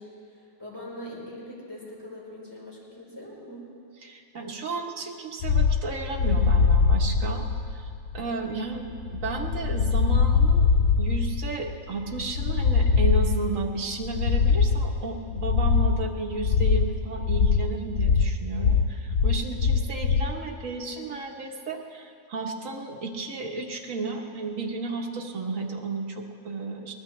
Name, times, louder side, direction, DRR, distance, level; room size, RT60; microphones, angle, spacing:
voice 1, 0.0-3.7 19.6-19.9, left 1 dB, 15° left, -6 dB, 4.5 m, -42 dB
voice 2, 4.0-7.4 7.7-7.9 8.1-26.9, right 3 dB, 65° right, 1 dB, 1.6 m, -33 dB
sound 1, 5.4-20.3, left 5 dB, 65° left, 0.8 m, -23 dB
22.0 x 19.5 x 3.3 m, 2.4 s
omnidirectional pair, 1.5 m